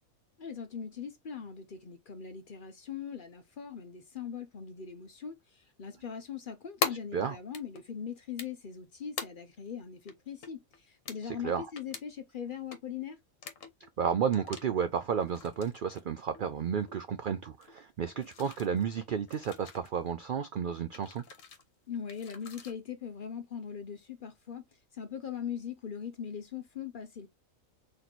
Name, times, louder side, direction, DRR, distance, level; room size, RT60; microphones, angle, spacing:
voice 1, 0.4-5.4 5.8-10.6 10.9-13.2 21.9-24.6 24.9-27.3, left 7 dB, 50° left, 0.7 m, -40 dB
sound 1, 6.8-6.9 7.5-7.8 8.4-8.8 9.2-9.3 9.7-9.8 10.1-10.2 10.4-10.8 11.1-11.2 11.8-12.0 12.5-12.8 13.4-13.9 14.3-14.6 15.2-16.0 16.3-17.0 17.3-17.4 17.6-17.7 18.1-18.8 19.3-19.9 20.9-21.6 22.1-22.7, left 5 dB, 70° left, 1.3 m, -40 dB
voice 2, 6.9-7.4 11.2-11.7 14.0-21.2, right 7 dB, 80° right, 0.4 m, -32 dB
4.1 x 3.2 x 2.9 m
omnidirectional pair, 1.4 m